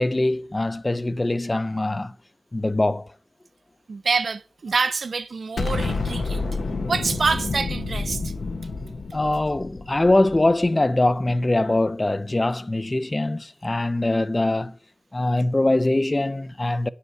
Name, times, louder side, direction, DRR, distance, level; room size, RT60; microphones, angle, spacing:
voice 1, 0.0-2.2 2.5-3.1 9.1-14.8 15.1-16.9, left 2 dB, 30° left, 0.5 m, -22 dB
voice 2, 3.9-6.4 6.9-8.3, right 4 dB, 75° right, 0.5 m, -26 dB
Explosion, 5.6-10.7, left 3 dB, 80° left, 0.9 m, -29 dB
9.2 x 5.7 x 4.6 m
cardioid pair, 50°, 0 cm